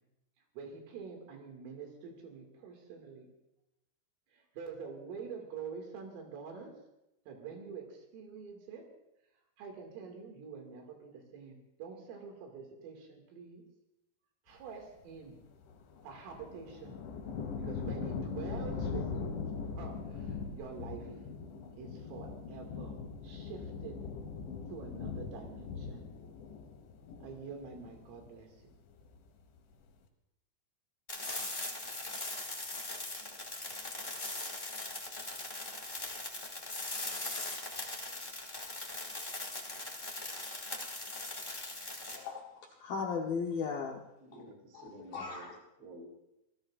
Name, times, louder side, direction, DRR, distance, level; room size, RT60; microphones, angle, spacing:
voice 1, 0.6-3.3 4.3-6.7 7.3-8.9 9.6-13.6 14.5-15.3 16.0-17.0 17.6-19.3 19.8-21.1 21.8-23.0 23.2-24.0 24.7-26.1 27.2-28.5, right 5 dB, 80° right, 2 dB, 4.8 m, -46 dB
sound 1, 15.6-28.4 28.7-29.4, left 5 dB, 70° left, 3.8 m, -41 dB
sound 2, 31.1-42.1, left 2 dB, 45° left, 0.6 m, -40 dB
voice 2, 42.1-44.0 44.7-44.9 45.1-45.5, left 5 dB, 90° left, 0 dB, 2.0 m, -36 dB
voice 3, 44.2-45.5 45.8-46.1, right 2 dB, 60° right, 1 dB, 5.4 m, -51 dB
26.5 x 17.5 x 2.5 m, 0.90 s
omnidirectional pair, 5.9 m